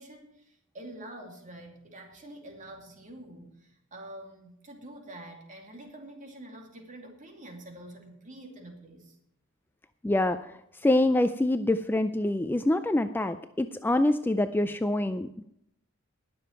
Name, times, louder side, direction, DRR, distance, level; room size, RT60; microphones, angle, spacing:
voice 1, 0.0-9.2, right 1 dB, 35° right, 2 dB, 2.6 m, -46 dB
voice 2, 10.0-15.4, left 1 dB, 10° left, 10 dB, 0.3 m, -26 dB
20.0 x 6.9 x 4.6 m, 0.79 s
head